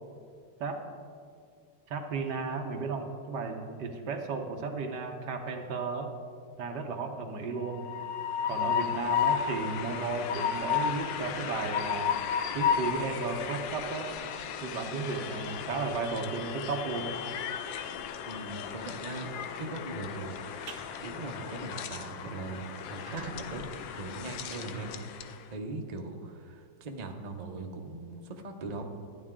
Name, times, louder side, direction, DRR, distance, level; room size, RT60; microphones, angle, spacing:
voice 1, 1.9-6.1 6.6-7.9 8.4-12.1 12.5-14.1 14.6-17.1, right 4 dB, 65° right, 4 dB, 1.5 m, -34 dB
Train, 7.6-25.4, left 8 dB, 80° left, 1.4 m, -34 dB
voice 2, 18.3-19.3 19.6-20.5 21.0-23.7 23.9-25.0 25.5-28.8, right 3 dB, 45° right, 3 dB, 0.5 m, -40 dB
sound 1, 20.7-20.8 21.3-21.5 21.9-22.0 22.2-22.3 22.8-25.4, right 5 dB, 85° right, 1.8 m, -45 dB
14.5 x 9.8 x 3.7 m, 2.2 s
omnidirectional pair, 2.0 m